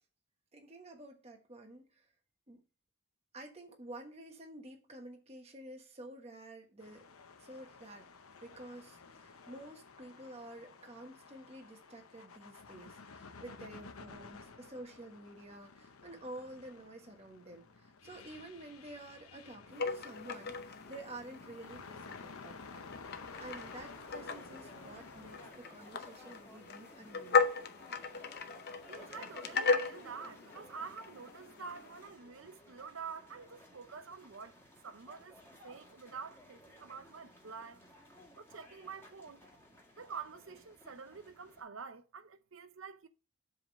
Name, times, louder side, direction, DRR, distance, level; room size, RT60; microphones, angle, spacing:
voice 1, 0.5-2.1 2.5-2.6 3.3-7.0 7.4-8.1 8.4-27.8, right 1 dB, 30° right, 1.3 m, -50 dB
sound 1, 6.8-25.5, left 4 dB, 75° left, 0.9 m, -53 dB
sound 2, 19.7-32.0, left 5 dB, 45° left, 0.7 m, -37 dB
sound 3, 23.3-41.6, left 1 dB, 10° left, 1.9 m, -58 dB
voice 2, 28.9-34.5 34.8-37.8 38.4-39.4 40.0-43.1, right 5 dB, 60° right, 0.6 m, -47 dB
7.7 x 3.7 x 6.3 m
head